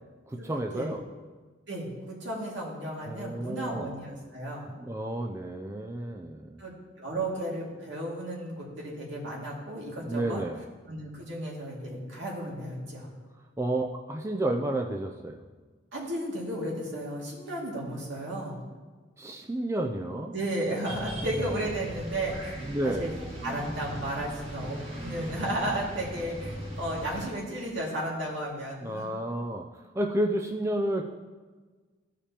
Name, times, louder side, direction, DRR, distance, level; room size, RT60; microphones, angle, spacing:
voice 1, 0.3-1.0 3.1-3.9 4.7-6.6 10.0-10.6 13.6-15.4 19.2-20.3 22.6-23.1 28.8-29.7 29.9-31.0, right 1 dB, 15° right, 2 dB, 0.4 m, -31 dB
voice 2, 1.7-4.7 6.6-10.4 10.9-13.1 15.9-18.6 20.3-22.5 22.8-23.1 23.4-29.2, right 1 dB, 75° right, -4 dB, 2.2 m, -34 dB
sound 1, 20.9-27.3, right 1 dB, 30° right, 1.6 m, -38 dB
14.0 x 5.0 x 2.9 m, 1.4 s
head